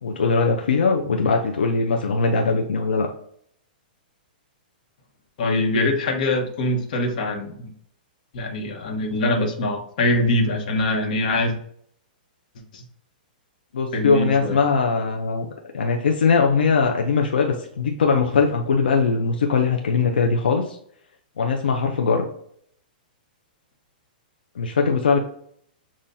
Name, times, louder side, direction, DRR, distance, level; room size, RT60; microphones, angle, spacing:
voice 1, 0.0-3.1 13.7-15.5 15.7-20.8 21.4-22.2 24.6-25.2, left 4 dB, 90° left, 2 dB, 0.6 m, -20 dB
voice 2, 5.4-7.7 8.3-11.5 12.7-12.8 13.9-14.6, left 2 dB, 60° left, 2 dB, 1.2 m, -23 dB
7.3 x 2.5 x 2.7 m, 0.64 s
hypercardioid pair, 145°, 5 cm